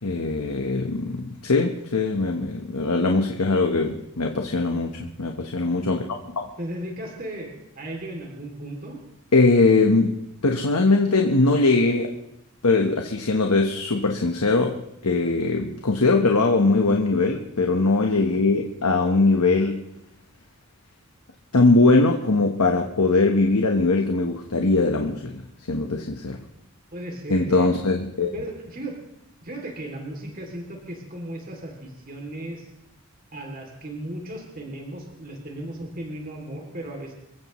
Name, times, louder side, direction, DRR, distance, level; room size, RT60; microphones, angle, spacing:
voice 1, 0.0-6.5 9.3-12.1 12.6-19.8 21.5-26.4 27.3-28.3, left 3 dB, 90° left, 2 dB, 1.2 m, -21 dB
voice 2, 6.6-9.0 19.0-19.1 26.9-27.7 28.3-29.0 29.4-32.7 33.3-37.1, right 1 dB, 40° right, 1 dB, 2.8 m, -36 dB
27.5 x 15.5 x 3.2 m, 0.82 s
head